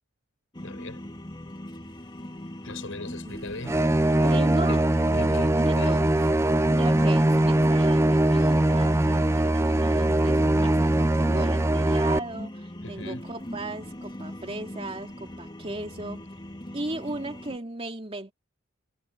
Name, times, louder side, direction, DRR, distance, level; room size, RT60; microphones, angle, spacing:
sound 1, 0.5-17.6, left 1 dB, 25° left, 2.7 m, -39 dB
voice 1, 0.6-1.0 2.6-3.9 4.2-4.8 5.1-5.9 12.8-13.2, left 2 dB, 85° left, 5.6 m, -39 dB
sound 2, 3.3-11.9, right 1 dB, 50° right, 6.4 m, -49 dB
sound 3, 3.6-12.2, right 1 dB, 15° right, 0.5 m, -21 dB
voice 2, 4.2-4.9 5.6-6.1 6.8-16.3 16.7-18.3, right 2 dB, 30° right, 3.0 m, -36 dB
head